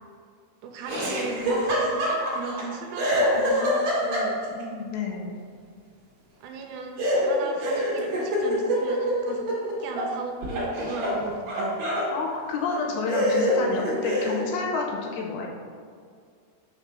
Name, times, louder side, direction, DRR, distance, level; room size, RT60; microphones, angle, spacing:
voice 1, 0.6-4.4 6.4-11.8, right 3 dB, 85° right, 3 dB, 3.0 m, -37 dB
Laughter, 0.9-2.6 3.0-4.6 7.0-10.1 10.4-12.1 12.7-12.8 13.1-14.4, equal, 60° right, 2.4 m, -25 dB
voice 2, 4.6-5.4 12.1-15.5, left 4 dB, 80° left, -1 dB, 2.8 m, -30 dB
7.3 x 3.3 x 5.9 m, 2.1 s
omnidirectional pair, 5.5 m